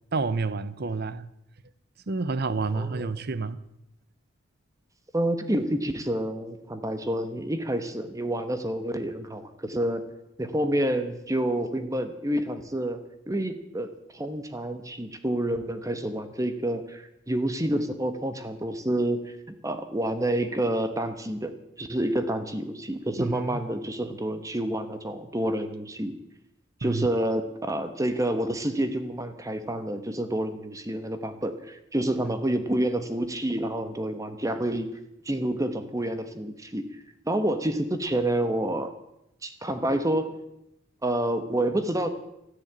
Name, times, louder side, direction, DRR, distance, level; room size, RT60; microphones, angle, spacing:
voice 1, 0.1-1.3 2.1-3.6 23.2-23.6 26.8-27.1 32.2-32.3, right 3 dB, 50° right, 0.8 m, -29 dB
voice 2, 2.7-3.1 5.1-10.0 10.4-13.0 13.3-19.3 19.6-21.5 21.8-26.1 26.8-34.9 35.2-36.9 37.2-38.9 39.4-40.4 41.0-42.1, right 1 dB, 15° right, 1.1 m, -28 dB
13.5 x 10.5 x 8.8 m
head